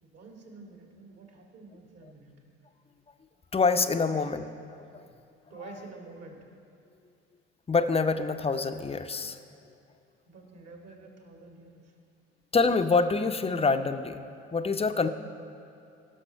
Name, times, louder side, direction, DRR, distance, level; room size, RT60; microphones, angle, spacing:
voice 1, 0.0-2.4 4.0-4.3 5.5-6.5 10.3-11.9, right 3 dB, 50° right, 1 dB, 2.0 m, -48 dB
voice 2, 3.5-4.5 4.9-5.0 7.7-9.4 12.5-14.2 14.5-15.1, left 4 dB, 20° left, 9 dB, 0.5 m, -26 dB
17.5 x 6.1 x 4.4 m, 2.5 s
hypercardioid pair, 55°, 32 cm